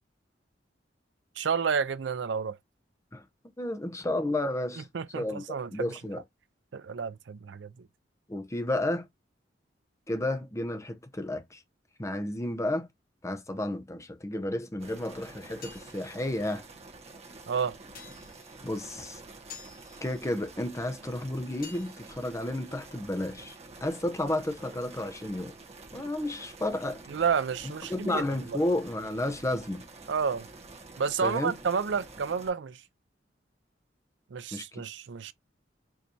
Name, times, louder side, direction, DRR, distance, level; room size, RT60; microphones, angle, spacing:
voice 1, 1.4-2.6 4.9-6.0 6.7-7.7 17.5-17.8 27.1-28.6 30.1-30.5 31.0-32.8 34.3-35.3, right 6 dB, 70° right, 0.5 m, -30 dB
voice 2, 3.6-4.9 5.1-6.2 8.3-9.1 10.1-11.6 12.0-12.9 13.2-16.6 18.6-19.2 20.0-23.5 23.8-25.5 25.9-27.0 27.9-29.8 31.2-31.5 34.5-34.8, left 1 dB, 15° left, 0.7 m, -32 dB
sound 1, 14.8-32.5, right 3 dB, 35° right, 1.4 m, -48 dB
sound 2, 15.2-23.8, left 6 dB, 50° left, 1.4 m, -54 dB
4.7 x 3.3 x 2.7 m
head